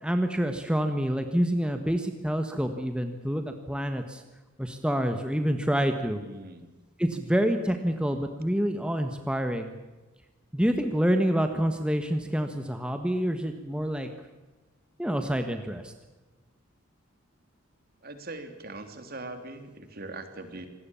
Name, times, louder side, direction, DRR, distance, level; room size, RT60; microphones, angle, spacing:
voice 1, 0.0-4.2 4.6-6.2 7.0-9.7 10.5-14.1 15.0-15.9, equal, 5° right, 6 dB, 1.5 m, -27 dB
voice 2, 6.2-6.7 18.0-20.7, right 2 dB, 50° right, 7 dB, 3.2 m, -41 dB
25.5 x 19.5 x 7.2 m, 1.1 s
head